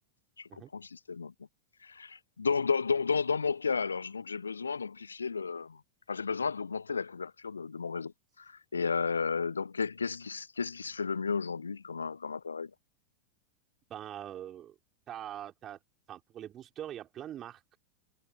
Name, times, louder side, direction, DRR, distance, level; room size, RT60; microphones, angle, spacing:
voice 1, 0.4-1.3 1.8-5.8 6.1-12.7, left 5 dB, 75° left, 0.8 m, -33 dB
voice 2, 13.9-14.8 15.1-15.8 16.1-17.8, right 11 dB, 30° right, 4.9 m, -43 dB
figure-of-eight pair, 90°, 0 cm